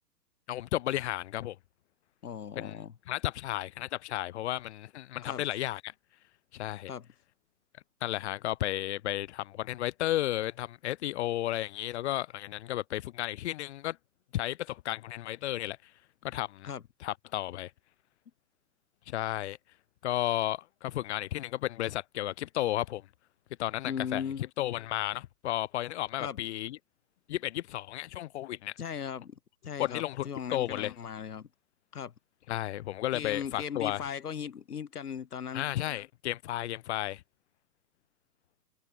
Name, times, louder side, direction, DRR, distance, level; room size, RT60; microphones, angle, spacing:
voice 1, 0.5-1.6 2.6-2.8 3.1-5.9 6.5-6.9 8.0-14.0 14.3-15.9 16.2-16.7 17.0-17.7 19.1-19.6 20.0-23.1 23.6-24.2 24.6-26.8 27.3-28.7 29.8-31.0 32.5-34.2 35.5-37.2, left 14 dB, 45° left, 1.9 m, -33 dB
voice 2, 2.2-2.9 5.2-5.4 6.9-7.1 16.6-16.8 23.8-24.4 26.2-26.4 28.8-31.5 31.9-32.1 33.1-35.6, left 7 dB, 70° left, 1.6 m, -38 dB
figure-of-eight pair, 120°, 47 cm